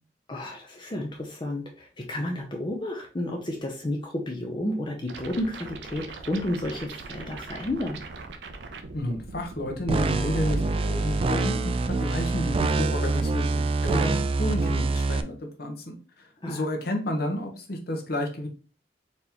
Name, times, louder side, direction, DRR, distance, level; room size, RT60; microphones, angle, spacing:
voice 1, 0.3-8.0 16.4-16.6, left 1 dB, 25° left, 1 dB, 0.6 m, -31 dB
sound 1, 5.1-10.9, right 3 dB, 75° right, 0.6 m, -41 dB
voice 2, 8.9-10.6 10.9-18.5, left 1 dB, 60° left, 3 dB, 1.0 m, -31 dB
sound 2, 9.9-15.2, right 3 dB, 30° right, 0.3 m, -25 dB
4.2 x 2.9 x 3.4 m, 0.35 s
head